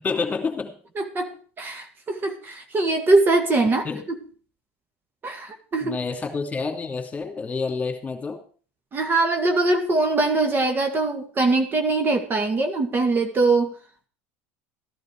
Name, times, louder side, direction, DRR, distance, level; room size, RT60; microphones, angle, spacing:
voice 1, 0.0-0.7 3.8-4.1 5.8-8.4, left 4 dB, 20° left, 5 dB, 2.7 m, -28 dB
voice 2, 1.0-4.2 5.2-6.0 8.9-13.7, right 3 dB, 30° right, 6 dB, 1.9 m, -22 dB
14.0 x 11.0 x 4.7 m, 0.41 s
hypercardioid pair, 90°, 7 cm